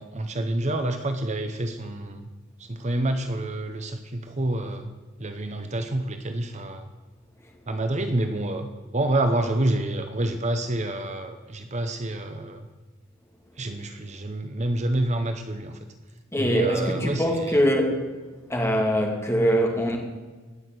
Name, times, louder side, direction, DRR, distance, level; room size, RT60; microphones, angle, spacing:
voice 1, 0.0-2.3 2.6-4.9 5.2-6.9 7.7-12.7 13.6-15.8 16.4-17.6, right 1 dB, 35° right, 7 dB, 0.9 m, -28 dB
voice 2, 16.3-18.0 18.5-20.0, equal, 15° left, 1 dB, 2.5 m, -22 dB
18.0 x 6.4 x 9.4 m, 1.3 s
head